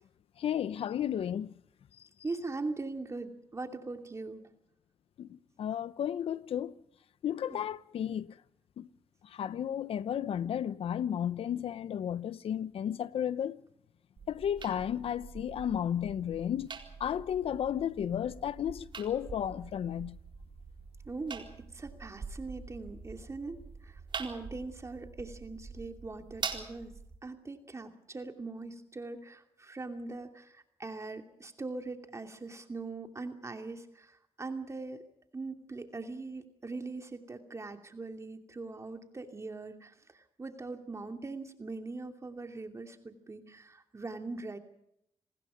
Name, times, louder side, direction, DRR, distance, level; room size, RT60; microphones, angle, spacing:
voice 1, 0.4-1.5 5.2-6.7 7.2-8.4 8.8-8.9 9.3-13.6 14.3-16.7 17.0-20.2, left 9 dB, 70° left, 0.9 m, -33 dB
voice 2, 2.2-4.5 7.5-7.6 21.1-21.5 21.7-23.6 23.8-26.9 27.2-35.0 35.3-44.6, right 3 dB, 30° right, 2.7 m, -41 dB
sound 1, 14.2-27.2, right 5 dB, 50° right, 4.2 m, -45 dB
27.5 x 20.0 x 5.1 m
cardioid pair, 75°, 10 cm